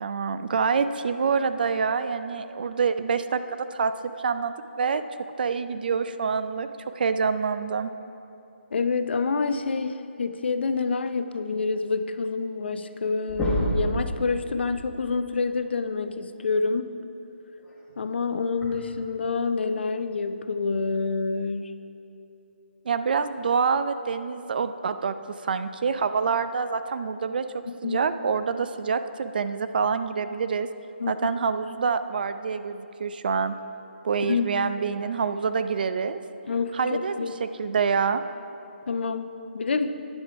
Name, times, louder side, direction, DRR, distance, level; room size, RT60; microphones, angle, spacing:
voice 1, 0.0-3.9 4.2-5.0 5.4-6.7 7.0-7.9 22.9-25.1 25.4-30.7 31.1-33.5 34.0-36.2 36.7-38.2, right 5 dB, 50° right, 11 dB, 0.4 m, -26 dB
voice 2, 8.7-16.9 18.0-21.7 27.7-28.0 31.0-31.3 34.3-34.5 36.5-37.3 38.9-39.3 39.5-40.0, left 4 dB, 60° left, 10 dB, 0.6 m, -27 dB
sound 1, 12.8-13.0 13.3-13.9 15.6-15.7 17.6-17.7 18.6-18.7, right 1 dB, 5° left, 1.5 m, -27 dB
10.0 x 9.8 x 4.7 m, 2.8 s
hypercardioid pair, 155°, 6 cm